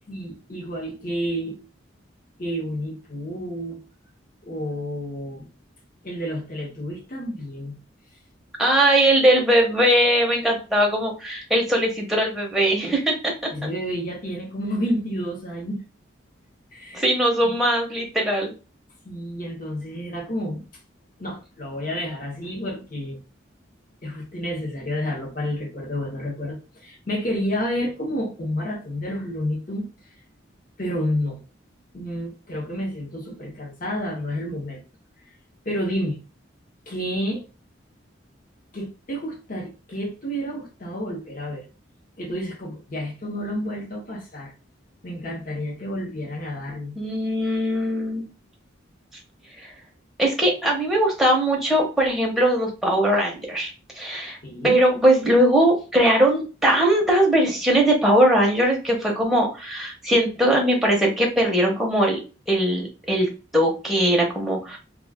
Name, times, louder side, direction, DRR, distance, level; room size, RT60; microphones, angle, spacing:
voice 1, 0.1-1.6 2.4-3.8 4.4-5.5 6.0-7.8 13.5-15.8 16.7-17.1 17.4-17.5 19.0-20.6 21.2-23.2 24.0-29.9 30.8-31.4 31.9-34.8 35.6-36.2 36.9-37.4 38.7-41.6 42.2-44.5 45.0-47.0 54.4-54.8, equal, 45° left, 0.9 m, -30 dB
voice 2, 8.6-13.5 16.9-18.5 47.0-48.2 49.6-49.7 50.2-53.7 53.9-54.4 54.6-62.2 62.5-64.8, right 1 dB, ahead, 0.7 m, -20 dB
2.4 x 2.3 x 3.4 m
head